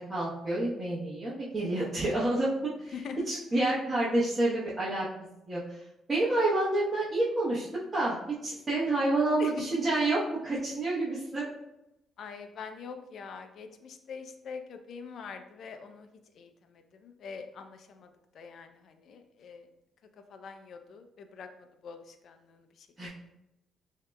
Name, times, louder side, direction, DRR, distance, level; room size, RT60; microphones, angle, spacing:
voice 1, 0.1-2.9 3.3-5.0 5.5-5.6 6.1-7.7 7.9-8.1 8.4-11.5 23.0-23.1, right 2 dB, 25° right, -8 dB, 1.1 m, -28 dB
voice 2, 2.9-3.3 9.4-9.6 12.2-16.1 16.3-18.1 18.3-19.7 20.3-21.5 21.8-22.9, left 5 dB, 65° left, 7 dB, 0.5 m, -43 dB
6.6 x 2.8 x 2.3 m, 0.88 s
cardioid pair, 90°, 0 cm